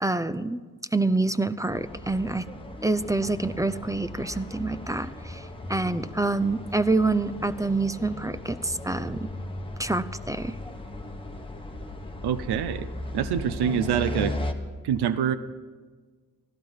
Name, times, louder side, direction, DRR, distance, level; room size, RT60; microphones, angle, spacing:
voice 1, 0.0-0.6 0.9-2.4 2.8-9.3 9.8-10.6, right 2 dB, 10° right, 14 dB, 0.6 m, -27 dB
sound 1, 1.7-14.5, left 1 dB, 15° left, 1.4 m, -37 dB
voice 2, 12.2-12.9 13.1-14.3 14.8-15.3, right 9 dB, 90° right, 13 dB, 0.7 m, -25 dB
15.0 x 12.0 x 5.7 m, 1.4 s
cardioid pair, 65°, 38 cm